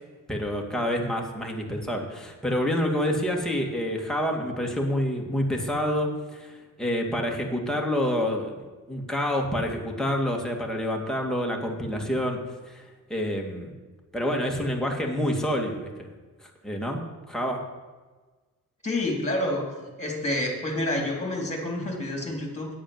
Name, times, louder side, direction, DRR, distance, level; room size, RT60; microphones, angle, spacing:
voice 1, 0.3-12.4 12.7-12.8 13.1-13.7 14.1-16.1 16.4-17.0 17.3-17.6, equal, ahead, 0 dB, 2.0 m, -28 dB
voice 2, 18.8-19.6 20.0-22.7, left 1 dB, 20° left, 1 dB, 3.3 m, -28 dB
9.4 x 8.6 x 7.2 m, 1.3 s
cardioid pair, 110°, 34 cm